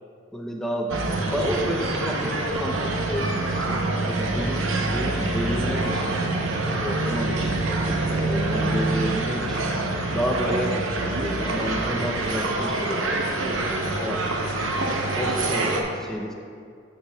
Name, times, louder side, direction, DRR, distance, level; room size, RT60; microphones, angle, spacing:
voice 1, 0.3-6.2 6.8-9.7 10.1-10.8 11.2-14.2 15.1-16.3, equal, ahead, 0 dB, 0.5 m, -31 dB
sound 1, 0.9-15.8, right 2 dB, 85° right, 0.7 m, -26 dB
12.5 x 5.8 x 2.2 m, 2.2 s
head